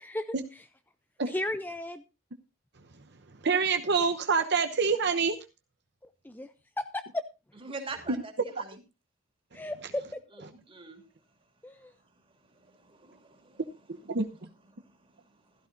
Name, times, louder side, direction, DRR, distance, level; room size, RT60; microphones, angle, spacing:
voice 1, 1.3-2.0 6.2-6.5 6.8-7.2 9.5-10.0 10.3-10.4 11.6-11.9, left 1 dB, 10° left, 10 dB, 0.5 m, -34 dB
voice 2, 3.4-5.4 8.1-8.2 14.1-14.3, right 5 dB, 55° right, 7 dB, 1.0 m, -26 dB
voice 3, 7.6-8.8 10.5-11.0 12.7-13.6, right 3 dB, 25° right, 5 dB, 2.7 m, -43 dB
15.5 x 13.0 x 2.6 m, 0.27 s
head